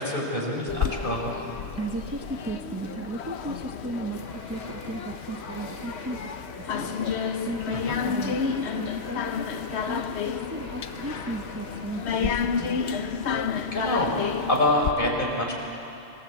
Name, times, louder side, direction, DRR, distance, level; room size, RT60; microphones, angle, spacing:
voice 1, 0.0-1.3 7.7-7.9 13.7-15.5, left 1 dB, 55° left, -1 dB, 4.7 m, -26 dB
sound 1, 0.7-14.9, left 6 dB, 85° left, 1.1 m, -31 dB
voice 2, 1.7-12.8, right 2 dB, 15° right, 3 dB, 0.9 m, -36 dB
sound 2, 4.1-12.4, equal, 15° left, 4.1 m, -45 dB
26.5 x 16.5 x 8.4 m, 2.7 s
omnidirectional pair, 1.1 m